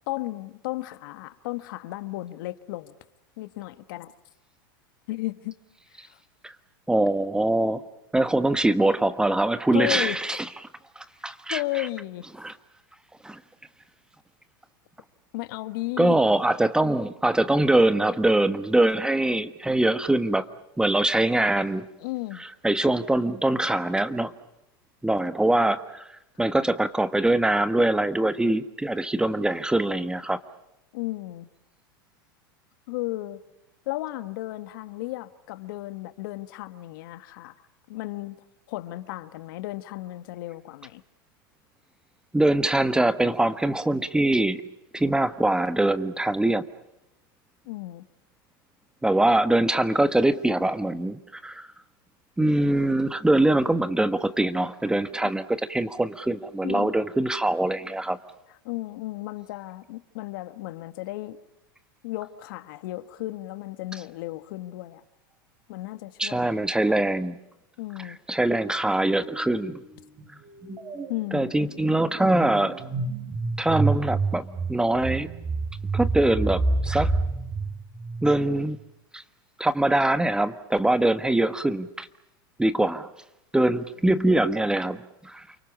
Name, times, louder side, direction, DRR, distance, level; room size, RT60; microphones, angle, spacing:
voice 1, 0.1-2.9 3.4-4.1 5.1-5.5 6.0-6.2 9.7-10.4 11.3-12.3 15.3-16.2 22.0-22.4 29.4-29.5 30.9-31.5 32.9-33.4 33.9-37.5 37.9-38.4 38.7-41.0 47.6-48.0 55.2-55.3 56.6-56.9 58.6-61.4 62.0-65.0 65.7-66.6 67.8-68.2 71.1-71.5, left 18 dB, 65° left, 12 dB, 1.5 m, -34 dB
voice 2, 6.9-7.8 8.1-10.5 11.0-11.9 12.4-12.5 13.2-13.4 16.0-20.4 20.8-21.9 22.6-24.3 25.0-26.1 26.4-30.4 42.3-44.6 44.9-46.6 49.0-51.7 52.4-58.2 66.2-67.4 68.0-69.8 71.3-72.8 73.6-75.3 75.9-77.1 78.2-78.8 79.1-79.2 79.6-82.1 82.6-83.1 83.5-85.0 85.2-85.5, right 1 dB, 5° right, 12 dB, 1.3 m, -23 dB
sound 1, 69.2-69.6 69.8-78.6, right 3 dB, 25° right, 5.6 m, -29 dB
29.0 x 24.0 x 7.1 m, 0.85 s
hypercardioid pair, 100°, 12 cm